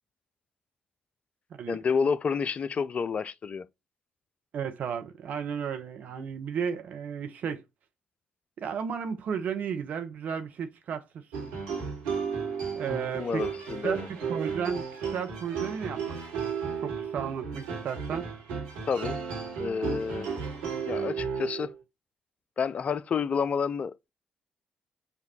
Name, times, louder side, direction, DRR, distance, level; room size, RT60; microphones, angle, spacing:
voice 1, 1.7-3.7 13.1-14.1 18.9-19.2 19.6-20.3 20.8-21.7 22.6-24.1, left 6 dB, 40° left, 0.4 m, -29 dB
voice 2, 4.5-7.6 8.6-11.0 11.4-11.5 12.8-13.4 13.8-16.5 16.8-18.2, right 7 dB, 50° right, 0.6 m, -33 dB
sound 1, 11.3-21.8, right 6 dB, 70° right, 1.3 m, -34 dB
6.6 x 2.3 x 2.7 m
figure-of-eight pair, 40°, 3 cm